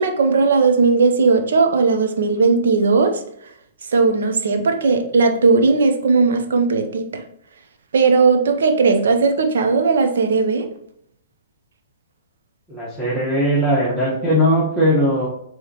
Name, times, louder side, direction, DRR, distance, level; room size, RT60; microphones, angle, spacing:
voice 1, 0.0-3.2 3.9-7.1 7.9-10.7, right 4 dB, 70° right, 6 dB, 0.7 m, -17 dB
voice 2, 12.7-15.3, equal, ahead, -10 dB, 1.4 m, -19 dB
4.7 x 3.1 x 3.0 m, 0.72 s
hypercardioid pair, 115°, 0 cm